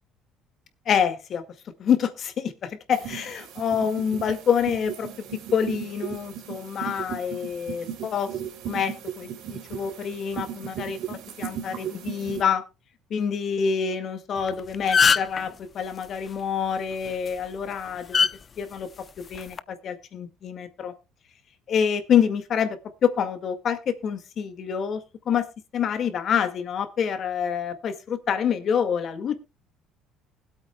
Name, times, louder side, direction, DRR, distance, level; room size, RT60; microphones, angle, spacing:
voice 1, 0.9-1.4 1.8-8.3 8.7-12.6 13.1-18.3 18.6-18.9 19.2-20.9 21.7-25.5 25.7-29.3, left 7 dB, 45° left, 9 dB, 1.8 m, -27 dB
sound 1, 2.9-12.4, right 9 dB, 70° right, 3.6 m, -36 dB
sound 2, 14.4-14.5 14.7-15.4 17.1-17.3 18.1-18.3 19.3-19.6, left 6 dB, 30° left, 0.5 m, -19 dB
20.5 x 8.5 x 2.2 m, 0.28 s
cardioid pair, 120°, 0 cm